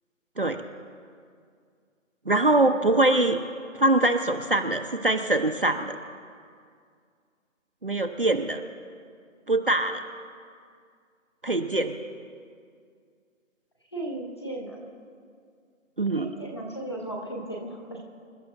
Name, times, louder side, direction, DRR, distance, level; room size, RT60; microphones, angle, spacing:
voice 1, 2.3-3.4 3.8-6.0 7.8-8.6 9.5-10.0 11.4-11.9 16.0-16.3, right 2 dB, 45° right, 5 dB, 0.6 m, -23 dB
voice 2, 13.9-14.8 16.1-18.0, right 1 dB, 20° left, -1 dB, 1.1 m, -35 dB
27.0 x 12.5 x 2.6 m, 2.2 s
hypercardioid pair, 180°, 40 cm